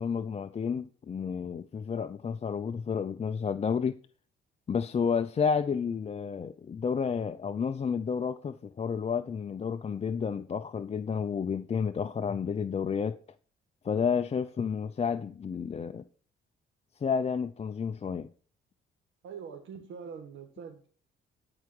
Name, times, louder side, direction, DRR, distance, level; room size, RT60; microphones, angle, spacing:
voice 1, 0.0-4.0 4.7-13.2 13.8-16.0 17.0-18.3, left 6 dB, 30° left, 0.6 m, -31 dB
voice 2, 19.2-20.9, right 6 dB, 85° right, 1.7 m, -43 dB
13.0 x 4.9 x 6.1 m
cardioid pair, 90°, 20 cm